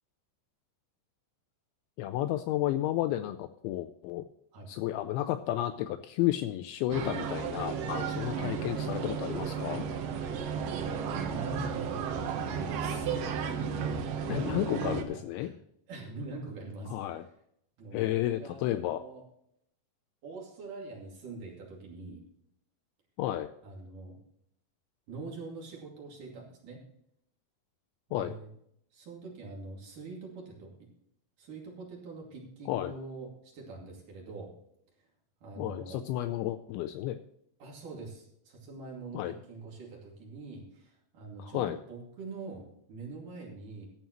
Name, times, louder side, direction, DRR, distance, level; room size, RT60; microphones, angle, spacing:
voice 1, 2.0-4.3 4.7-9.9 14.3-15.5 16.9-17.2 17.9-19.0 23.2-23.5 28.1-28.4 32.7-32.9 35.6-37.2 39.1-39.3 41.4-41.8, left 13 dB, 85° left, 10 dB, 2.7 m, -32 dB
sound 1, 6.9-15.0, right 6 dB, 85° right, 1.9 m, -33 dB
voice 2, 11.3-12.1 12.5-13.1 14.8-15.6 15.9-17.3 17.8-19.2 20.2-22.2 23.6-24.2 25.1-26.8 28.1-28.5 28.9-30.9 31.4-34.5 35.4-36.0 37.6-43.9, right 3 dB, 45° right, -2 dB, 3.5 m, -44 dB
14.5 x 11.5 x 3.1 m, 0.72 s
omnidirectional pair, 5.7 m